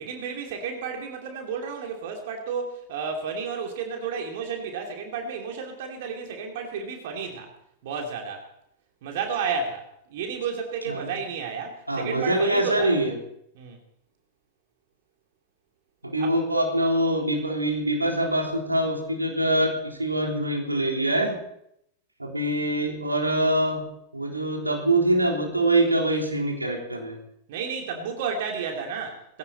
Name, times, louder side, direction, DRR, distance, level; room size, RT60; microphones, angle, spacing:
voice 1, 0.0-7.5 7.8-8.4 9.0-12.9 13.5-13.8 16.2-16.3 27.5-29.4, right 5 dB, 55° right, 2 dB, 2.9 m, -32 dB
voice 2, 11.9-13.1 16.0-21.4 22.2-27.2, right 1 dB, 85° right, 0 dB, 3.6 m, -24 dB
20.5 x 16.5 x 4.2 m, 0.74 s
figure-of-eight pair, 90°, 0 cm